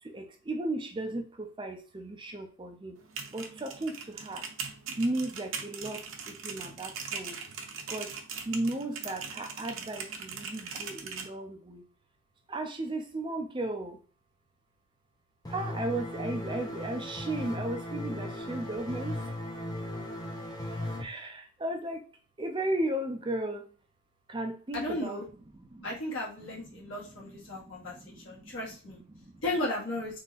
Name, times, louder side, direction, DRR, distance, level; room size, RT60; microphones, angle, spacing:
voice 1, 0.0-3.0 3.3-4.5 5.0-7.4 7.9-8.2 8.4-11.8 12.5-14.0 15.5-19.4 21.0-22.1 22.4-23.7 24.3-25.2 25.5-25.9 26.4-29.4, right 1 dB, 25° right, 5 dB, 0.5 m, -35 dB
sound 1, 3.0-11.3, right 6 dB, 75° right, 0.8 m, -40 dB
sound 2, 15.5-21.0, left 1 dB, 20° left, 0.8 m, -37 dB
voice 2, 24.7-25.2 25.8-29.0 29.4-30.2, left 1 dB, 65° left, -4 dB, 1.9 m, -35 dB
3.8 x 2.8 x 4.1 m, 0.39 s
head